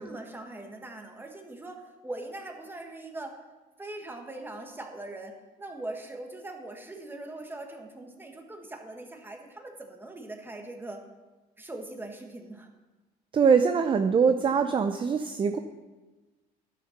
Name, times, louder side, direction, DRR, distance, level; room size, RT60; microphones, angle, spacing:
voice 1, 0.0-3.4 3.8-11.0 11.6-12.7, right 2 dB, 10° right, 3 dB, 1.5 m, -41 dB
voice 2, 13.3-15.6, right 6 dB, 30° right, 8 dB, 0.6 m, -23 dB
11.5 x 6.6 x 5.8 m, 1.2 s
cardioid pair, 110°, 17 cm